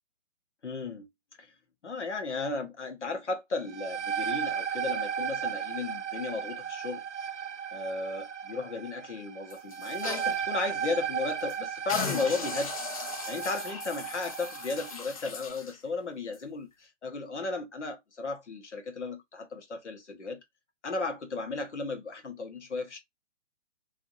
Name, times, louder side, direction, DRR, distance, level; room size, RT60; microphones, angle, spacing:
voice 1, 0.6-1.1 1.4-1.5 1.8-7.0 7.7-20.4 20.8-23.0, left 3 dB, 75° left, 1.1 m, -35 dB
sound 1, 3.5-15.0, right 8 dB, 85° right, 0.5 m, -35 dB
sound 2, 9.5-10.4 10.8-10.9 11.3-11.5 11.9-15.8 16.3-16.4, left 5 dB, 30° left, 0.4 m, -38 dB
2.7 x 2.6 x 2.3 m
figure-of-eight pair, 130°, 35 cm